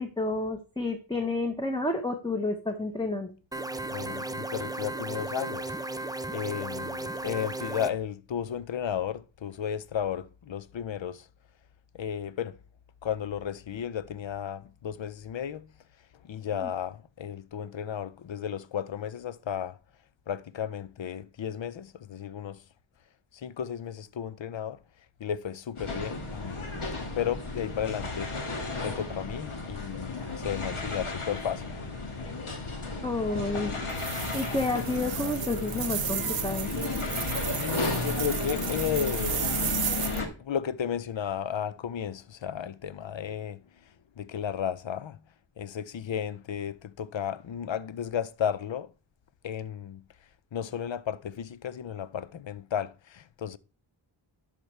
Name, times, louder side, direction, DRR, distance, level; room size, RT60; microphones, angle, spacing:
voice 1, 0.0-3.3 16.6-16.7 33.0-33.7 34.3-36.7, left 2 dB, 10° left, 0.9 m, -30 dB
sound 1, 3.5-7.9, right 2 dB, 10° right, 0.4 m, -35 dB
voice 2, 3.9-5.8 6.3-11.3 11.9-12.6 13.0-15.7 16.2-19.8 20.3-22.6 23.3-24.8 25.2-28.4 28.8-31.7 37.5-39.5 40.2-43.6 44.2-45.2 45.6-48.9 49.4-50.0 50.5-53.6, left 8 dB, 65° left, 0.6 m, -34 dB
sound 2, 25.8-40.3, left 3 dB, 85° left, 1.6 m, -33 dB
sound 3, 33.9-40.2, right 8 dB, 65° right, 0.6 m, -34 dB
10.5 x 5.9 x 3.3 m
wide cardioid pair, 45°, 49 cm